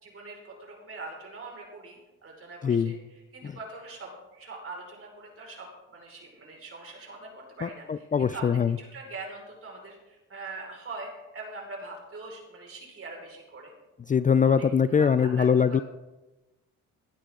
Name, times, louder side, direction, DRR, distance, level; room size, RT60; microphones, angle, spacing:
voice 1, 0.0-13.7 14.4-15.8, right 3 dB, 45° right, 0 dB, 5.4 m, -43 dB
voice 2, 7.6-8.8 14.1-15.8, left 7 dB, 25° left, 14 dB, 0.4 m, -23 dB
17.5 x 11.5 x 3.8 m, 1.1 s
cardioid pair, 80°, 31 cm